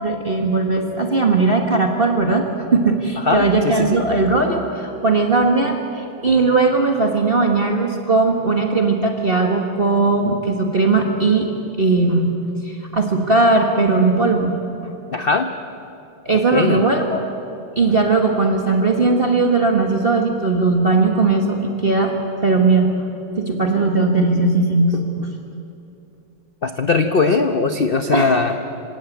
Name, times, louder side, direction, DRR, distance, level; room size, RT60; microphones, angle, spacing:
voice 1, 0.0-11.5 11.8-12.3 12.6-14.6 16.2-17.2 17.7-22.1 22.4-23.1 23.4-25.3 28.1-28.3, right 3 dB, 30° right, 2 dB, 1.6 m, -18 dB
voice 2, 3.2-4.0 15.1-15.5 16.5-16.8 26.6-28.6, left 4 dB, 45° left, 7 dB, 0.7 m, -19 dB
26.0 x 17.0 x 9.3 m, 2.7 s
omnidirectional pair, 2.1 m